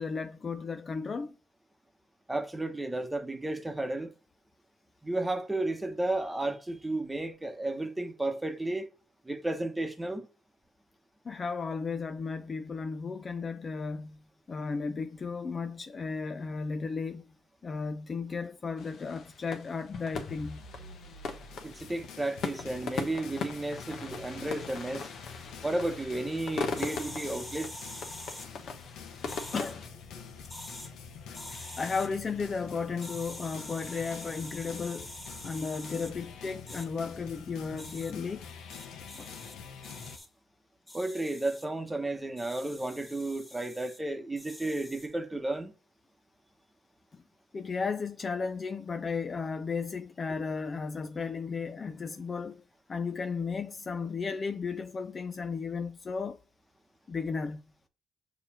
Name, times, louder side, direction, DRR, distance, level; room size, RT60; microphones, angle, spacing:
voice 1, 0.0-1.3 11.2-14.2 14.5-17.3 17.6-20.6 29.5-29.8 31.8-35.1 35.4-38.5 39.1-39.3 47.1-47.2 47.5-52.6 52.9-56.4 57.1-57.6, left 5 dB, 35° left, 0.4 m, -34 dB
voice 2, 2.3-4.1 5.0-8.9 9.2-10.3 21.6-25.1 25.6-27.9 40.9-45.7, right 2 dB, 10° right, 1.1 m, -33 dB
sound 1, 18.8-29.9, left 4 dB, 60° left, 1.2 m, -40 dB
sound 2, 20.3-40.2, left 6 dB, 85° left, 1.0 m, -46 dB
sound 3, 26.8-28.5 29.3-29.7 30.4-30.9 31.3-32.1 33.0-36.1 36.7-36.9 37.8-38.1 38.7-39.5 39.8-40.3 40.9-41.6 42.4-44.0 44.4-45.1, left 1 dB, 10° left, 1.9 m, -45 dB
6.7 x 3.2 x 6.0 m
cardioid pair, 115°, 0 cm